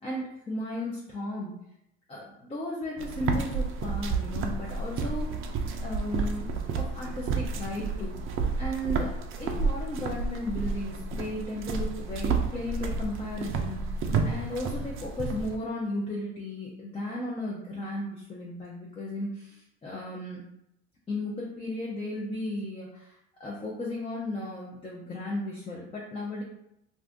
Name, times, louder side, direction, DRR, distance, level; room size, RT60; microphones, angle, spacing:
voice 1, 0.0-1.5 2.1-5.3 5.8-6.5 6.7-8.1 8.6-14.0 14.2-20.4 21.1-26.4, left 1 dB, 15° left, -3 dB, 0.6 m, -35 dB
sound 1, 3.0-15.5, right 4 dB, 40° right, 0.5 m, -31 dB
2.5 x 2.4 x 3.5 m, 0.80 s
supercardioid pair, 100°, 33 cm